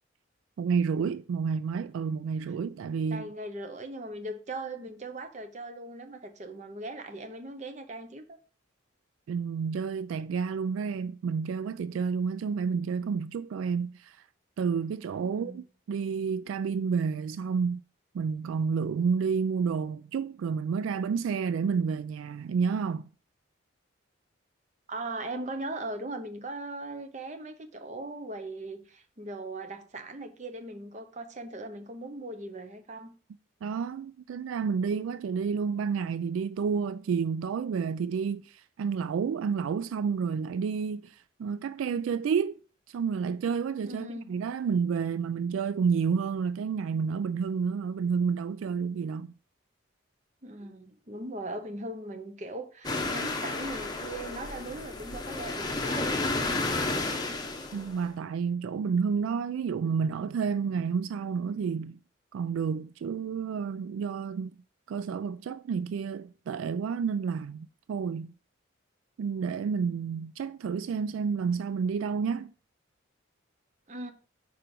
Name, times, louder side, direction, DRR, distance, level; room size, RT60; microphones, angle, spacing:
voice 1, 0.6-3.3 9.3-14.2 14.6-17.8 18.1-23.0 33.6-42.6 42.9-49.3 57.7-62.0 62.3-64.5 64.9-68.3 69.2-72.5, right 6 dB, 80° right, 0.3 m, -30 dB
voice 2, 3.1-8.4 15.2-15.7 24.9-33.1 43.8-44.3 50.4-56.1 73.9-74.1, right 2 dB, 35° right, 0.7 m, -39 dB
sound 1, 52.8-58.0, left 2 dB, 20° left, 0.8 m, -32 dB
5.0 x 4.4 x 5.2 m
head